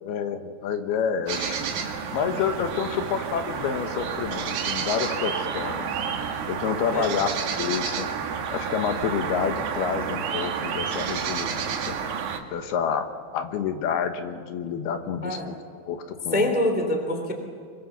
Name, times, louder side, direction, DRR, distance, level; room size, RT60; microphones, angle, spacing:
voice 1, 0.0-5.9 6.5-8.1 8.5-12.0 12.5-13.1 13.3-16.5, left 7 dB, 75° left, 7 dB, 3.2 m, -29 dB
sound 1, 1.3-12.4, right 7 dB, 70° right, 3.5 m, -30 dB
voice 2, 16.3-17.3, left 1 dB, 5° right, 4 dB, 2.5 m, -25 dB
25.5 x 24.0 x 7.1 m, 2.1 s
omnidirectional pair, 4.7 m